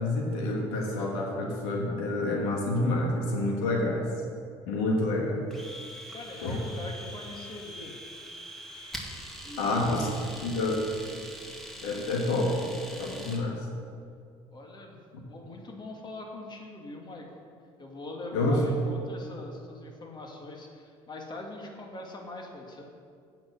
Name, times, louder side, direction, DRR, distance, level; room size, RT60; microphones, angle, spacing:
voice 1, 0.0-4.1 4.7-5.4 6.4-6.6 9.6-10.1 10.4-10.8 11.8-12.7 13.0-13.7 18.3-18.6, left 2 dB, 80° left, -1 dB, 1.5 m, -28 dB
Domestic sounds home sounds, 5.5-13.5, equal, ahead, 1.8 m, -43 dB
voice 2, 6.1-8.0 9.4-9.8 14.5-17.3 17.8-22.8, left 2 dB, 35° left, 1 dB, 2.0 m, -42 dB
8.6 x 5.9 x 7.7 m, 2.3 s
hypercardioid pair, 65°, 13 cm